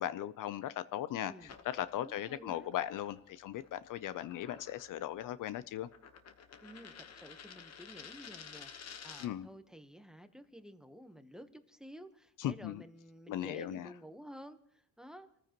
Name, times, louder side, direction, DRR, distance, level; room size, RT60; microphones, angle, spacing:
voice 1, 0.0-1.3 1.6-5.9 9.2-9.5 12.4-12.8 13.3-13.9, left 12 dB, 60° left, 15 dB, 0.6 m, -38 dB
voice 2, 1.2-1.5 2.0-2.7 6.6-15.3, equal, ahead, 9 dB, 1.0 m, -52 dB
sound 1, 1.4-9.5, left 7 dB, 45° left, 1.2 m, -53 dB
28.0 x 14.5 x 3.0 m, 0.71 s
cardioid pair, 115°, 35 cm